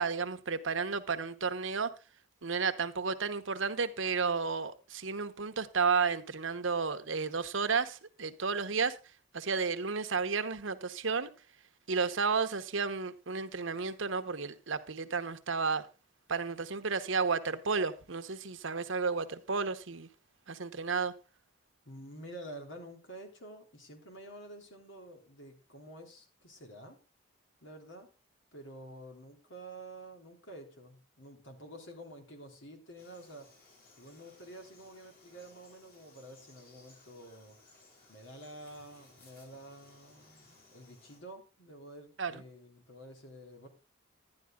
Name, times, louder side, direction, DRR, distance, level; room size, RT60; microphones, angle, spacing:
voice 1, 0.0-1.9 2.4-9.0 9.3-11.3 11.9-15.9 16.3-20.1 20.5-21.1 42.2-42.4, right 5 dB, 80° right, 1.0 m, -32 dB
voice 2, 21.8-27.0 27.6-28.1 28.5-33.5 34.0-37.6 38.1-43.7, right 1 dB, 75° left, 3.4 m, -49 dB
Frog, 33.0-41.2, left 2 dB, 50° left, 6.4 m, -61 dB
11.5 x 11.0 x 3.7 m
head